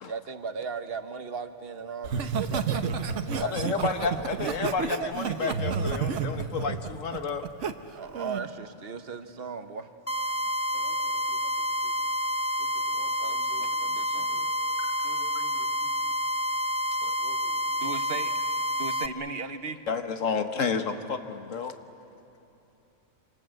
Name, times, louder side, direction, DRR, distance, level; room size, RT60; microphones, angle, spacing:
voice 1, 0.1-2.7 3.2-3.8 7.9-9.9 13.2-14.5 17.8-18.4 18.7-19.8, right 5 dB, 50° right, 9 dB, 1.3 m, -37 dB
Laughter, 2.0-7.7 8.1-8.5, right 6 dB, 70° right, 1.3 m, -30 dB
voice 2, 3.5-7.4 14.8-14.9 17.0-17.1 19.9-21.7, left 5 dB, 80° left, 7 dB, 1.7 m, -31 dB
sound 1, 10.1-19.1, equal, 25° left, 0.3 m, -29 dB
voice 3, 10.7-12.1 12.6-13.7 14.0-14.5 15.0-16.1 17.2-17.9, left 1 dB, 65° left, 0 dB, 3.2 m, -52 dB
27.0 x 26.5 x 7.8 m, 3.0 s
omnidirectional pair, 1.3 m